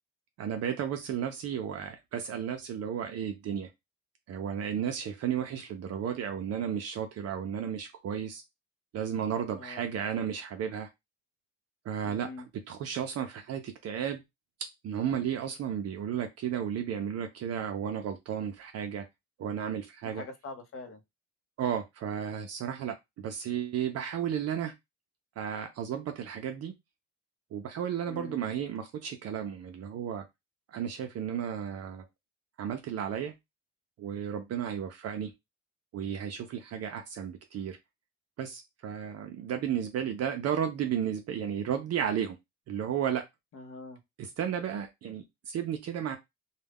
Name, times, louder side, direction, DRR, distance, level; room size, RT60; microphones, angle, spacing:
voice 1, 0.4-3.7 4.3-8.4 8.9-10.9 11.9-12.3 12.7-14.2 14.8-19.0 19.4-20.2 21.6-24.7 25.4-26.7 27.5-30.2 30.7-32.0 32.6-33.3 34.0-35.3 35.9-37.8 38.4-42.4 42.7-43.2 44.2-46.2, right 8 dB, 55° right, 5 dB, 0.5 m, -33 dB
voice 2, 9.6-9.9 12.0-12.5 20.0-21.0 28.1-28.4 43.5-44.0, left 3 dB, 45° left, 5 dB, 0.7 m, -44 dB
2.3 x 2.1 x 3.4 m, 0.20 s
cardioid pair, 130°, 30 cm